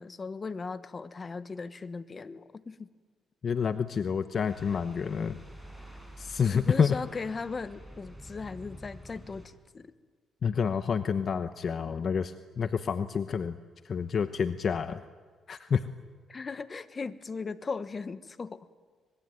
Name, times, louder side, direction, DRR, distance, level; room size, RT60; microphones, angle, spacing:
voice 1, 0.0-2.9 6.5-9.9 16.3-18.7, left 4 dB, 35° left, 13 dB, 1.4 m, -38 dB
voice 2, 3.4-5.4 6.2-7.0 10.4-13.6 13.8-15.0 15.5-15.8, left 6 dB, 50° left, 11 dB, 1.0 m, -28 dB
sound 1, 4.5-9.5, equal, ahead, 7.3 m, -48 dB
25.5 x 22.0 x 9.4 m, 1.5 s
cardioid pair, 90°, 0 cm